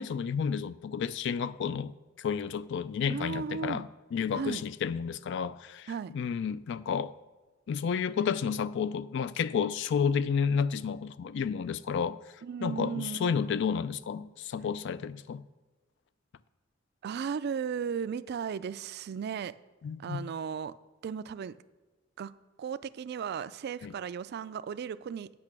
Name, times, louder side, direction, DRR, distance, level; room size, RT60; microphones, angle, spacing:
voice 1, 0.0-1.9 2.2-7.2 7.7-12.2 12.6-15.4 19.8-20.3 23.8-23.9, left 6 dB, 65° left, 0.3 m, -31 dB
voice 2, 3.1-3.9 4.3-4.6 5.9-6.1 12.4-13.5 17.0-19.5 20.0-20.7 21.0-21.6 22.2-22.3 22.6-25.3, right 6 dB, 55° right, 0.3 m, -35 dB
8.6 x 5.7 x 6.0 m
head